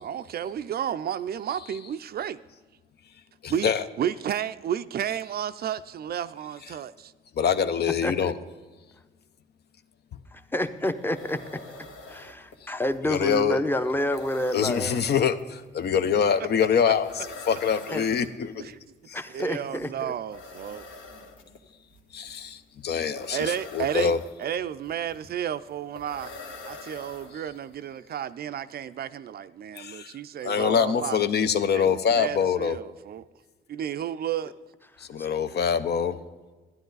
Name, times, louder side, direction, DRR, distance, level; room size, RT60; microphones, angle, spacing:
voice 1, 0.0-2.4 3.5-3.7 4.0-7.1 18.6-18.8 19.3-20.9 23.3-24.1 24.4-26.3 26.6-31.2 31.7-33.2 33.7-34.5, right 9 dB, 50° right, 0.4 m, -32 dB
voice 2, 3.4-3.8 7.4-8.3 13.1-13.6 14.5-18.6 19.1-19.2 22.1-24.2 29.8-30.2 30.4-32.8 35.0-36.2, left 7 dB, 55° left, 0.6 m, -25 dB
voice 3, 10.3-11.6 12.1-15.0 17.9-18.0 19.1-20.1 21.1-21.6 35.2-35.3, left 1 dB, 10° left, 0.7 m, -29 dB
sound 1, 10.4-10.5 10.7-27.8, left 3 dB, 75° left, 1.4 m, -45 dB
12.5 x 10.0 x 3.9 m
cardioid pair, 90°, 20 cm